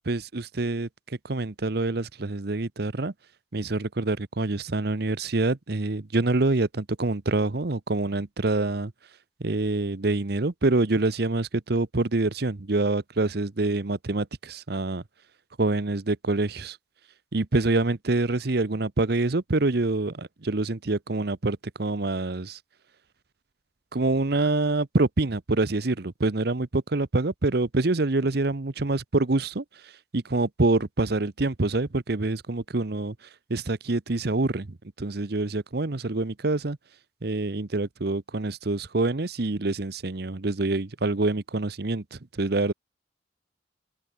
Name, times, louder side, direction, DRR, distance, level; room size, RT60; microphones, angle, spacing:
voice 1, 0.0-3.1 3.5-8.9 9.4-15.0 15.6-16.8 17.3-22.6 23.9-29.6 30.1-33.1 33.5-36.8 37.2-42.7, right 2 dB, 60° right, 0.9 m, -26 dB
open air
head